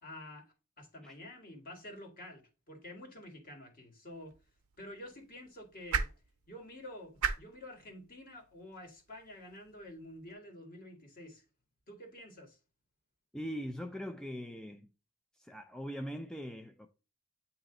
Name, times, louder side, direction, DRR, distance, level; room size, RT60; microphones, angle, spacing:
voice 1, 0.0-4.4 4.8-6.1 6.5-11.4 11.9-12.6, left 1 dB, 40° left, 1.7 m, -49 dB
sound 1, 4.1-10.3, right 6 dB, 85° right, 0.7 m, -41 dB
voice 2, 13.3-14.9 15.4-16.9, equal, 5° left, 0.3 m, -41 dB
8.7 x 2.9 x 3.8 m
head